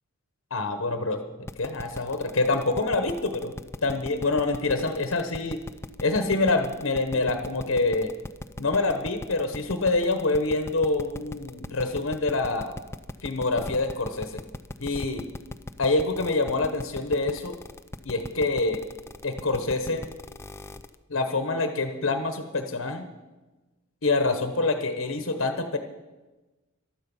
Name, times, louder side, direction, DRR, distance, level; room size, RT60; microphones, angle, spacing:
voice 1, 0.5-1.2 1.6-3.5 3.8-5.6 6.0-8.1 8.6-12.7 13.2-14.4 14.8-15.2 15.8-17.6 18.0-18.8 19.2-20.1 21.1-23.1 24.0-25.8, left 3 dB, 70° left, 7 dB, 1.1 m, -26 dB
sound 1, 1.5-20.9, left 1 dB, 15° left, 0.5 m, -38 dB
15.0 x 12.5 x 5.5 m, 1.1 s
head